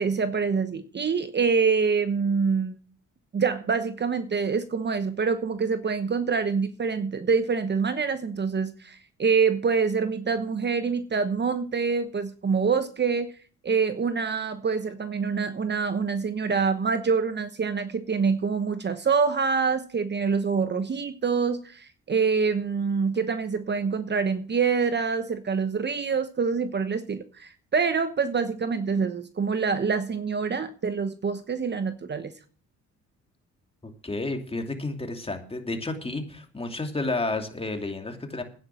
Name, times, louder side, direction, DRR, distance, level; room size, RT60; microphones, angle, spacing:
voice 1, 0.0-2.7 3.3-13.3 13.6-32.3, right 5 dB, 35° right, 11 dB, 1.0 m, -26 dB
voice 2, 33.8-38.4, left 2 dB, 20° left, 4 dB, 2.7 m, -31 dB
10.5 x 9.8 x 5.8 m, 0.41 s
cardioid pair, 90°, 30 cm